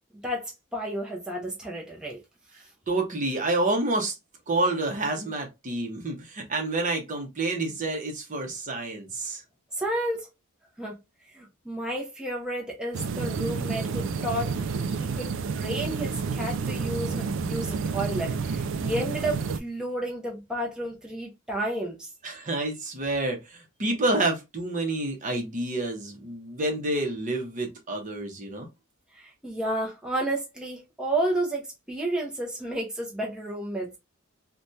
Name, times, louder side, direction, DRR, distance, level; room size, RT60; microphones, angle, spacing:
voice 1, 0.2-2.2 9.7-10.3 10.8-11.0 11.3-14.5 14.9-22.1 29.1-34.0, right 1 dB, 5° right, 0.6 m, -31 dB
voice 2, 2.9-4.1 4.5-9.4 22.2-28.7, right 2 dB, 35° right, 0.8 m, -28 dB
sound 1, 12.9-19.6, right 5 dB, 60° right, 0.3 m, -30 dB
3.3 x 2.2 x 2.6 m
head